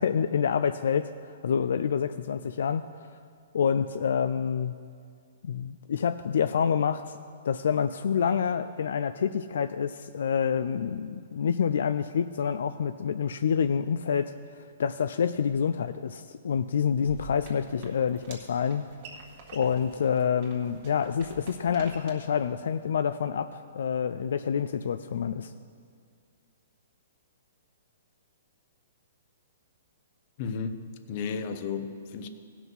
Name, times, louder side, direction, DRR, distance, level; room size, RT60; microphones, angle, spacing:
voice 1, 0.0-3.1 3.5-4.8 5.4-7.2 7.4-18.8 19.5-25.5, left 7 dB, 75° left, 11 dB, 0.3 m, -27 dB
sound 1, 17.0-22.1, right 4 dB, 40° right, 1.7 m, -48 dB
voice 2, 30.4-30.8 31.1-32.3, left 5 dB, 40° left, 9 dB, 0.7 m, -33 dB
16.0 x 5.9 x 5.4 m, 2.2 s
hypercardioid pair, 150°, 0 cm